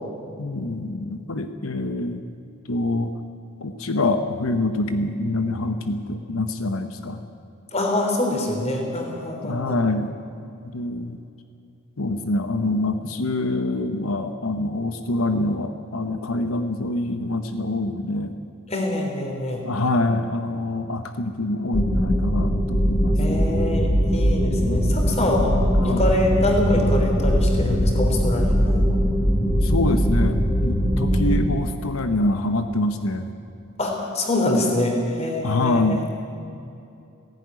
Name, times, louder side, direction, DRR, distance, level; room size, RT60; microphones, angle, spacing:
voice 1, 0.4-2.2 2.7-3.1 3.6-7.2 9.4-10.1 10.7-11.2 12.0-18.3 19.6-23.4 24.5-25.0 25.7-26.0 29.6-33.3 35.4-36.1, left 2 dB, 90° left, 8 dB, 1.0 m, -25 dB
voice 2, 7.7-9.7 18.7-19.6 23.2-25.5 25.8-28.9 33.8-36.0, left 1 dB, 30° left, 1 dB, 3.5 m, -25 dB
sound 1, 21.7-31.5, equal, 5° left, 2.2 m, -21 dB
17.0 x 16.0 x 9.6 m, 2.6 s
head